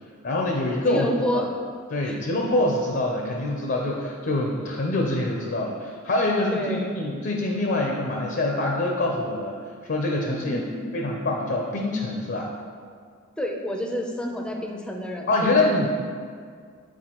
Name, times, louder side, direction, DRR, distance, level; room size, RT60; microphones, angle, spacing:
voice 1, 0.2-1.1 1.3-1.4 1.9-9.6 9.8-10.6 10.9-12.5 15.3-15.9, left 2 dB, 55° left, 0 dB, 0.6 m, -25 dB
voice 2, 0.9-1.5 2.0-2.2 6.5-6.9 10.4-11.0 13.4-15.9, equal, 5° left, 1 dB, 0.5 m, -29 dB
8.2 x 4.4 x 2.9 m, 2.1 s
head